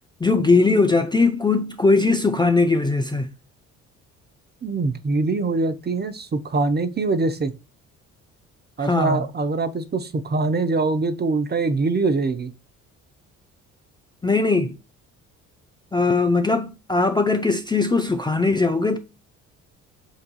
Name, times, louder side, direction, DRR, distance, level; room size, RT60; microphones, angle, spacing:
voice 1, 0.2-3.3 8.8-9.2 14.2-14.8 15.9-19.0, left 3 dB, 10° left, 0.5 m, -20 dB
voice 2, 4.6-7.5 8.8-12.5, right 3 dB, 25° right, 0.7 m, -23 dB
7.9 x 2.7 x 2.2 m
hypercardioid pair, 50°, 39 cm